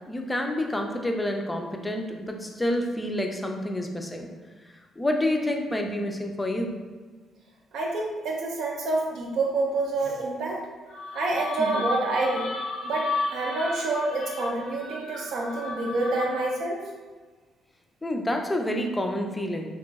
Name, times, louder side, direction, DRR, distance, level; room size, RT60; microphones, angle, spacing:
voice 1, 0.1-4.3 5.0-6.7 11.6-11.9 18.0-19.7, left 1 dB, 15° left, 3 dB, 0.4 m, -28 dB
voice 2, 7.7-10.6 11.1-12.5 12.8-16.8, right 2 dB, 75° right, -1 dB, 0.6 m, -28 dB
sound 1, 10.9-16.6, left 2 dB, 85° left, 0.4 m, -33 dB
2.9 x 2.5 x 2.3 m, 1.4 s
cardioid pair, 90°, 0 cm